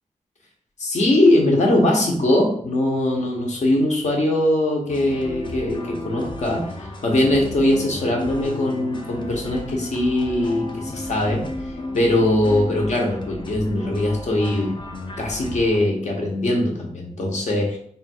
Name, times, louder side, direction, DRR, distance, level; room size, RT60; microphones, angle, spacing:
voice 1, 0.8-6.7 7.0-11.5 11.9-14.8 15.2-17.8, left 1 dB, 60° left, 0 dB, 0.9 m, -21 dB
sound 1, 4.9-15.8, left 1 dB, 35° left, 0.5 m, -34 dB
3.5 x 2.3 x 4.3 m, 0.63 s
wide cardioid pair, 115°, 13 cm